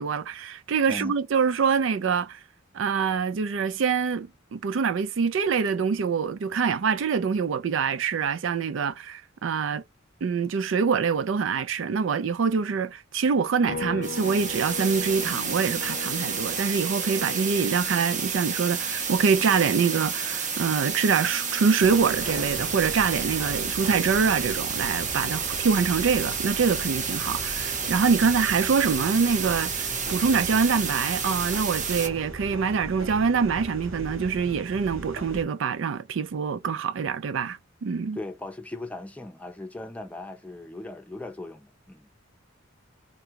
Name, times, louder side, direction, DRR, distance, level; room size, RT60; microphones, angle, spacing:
voice 1, 0.0-2.4 2.7-9.8 10.2-38.2, right 5 dB, 70° right, 0.4 m, -25 dB
sound 1, 13.7-27.2 27.6-29.8, left 4 dB, 55° left, 0.6 m, -43 dB
sound 2, 14.0-32.1, right 6 dB, 40° right, 0.7 m, -30 dB
sound 3, 21.8-35.4, right 1 dB, 85° right, 1.5 m, -39 dB
voice 2, 38.1-42.1, left 2 dB, 5° left, 0.6 m, -38 dB
3.7 x 2.3 x 4.5 m
head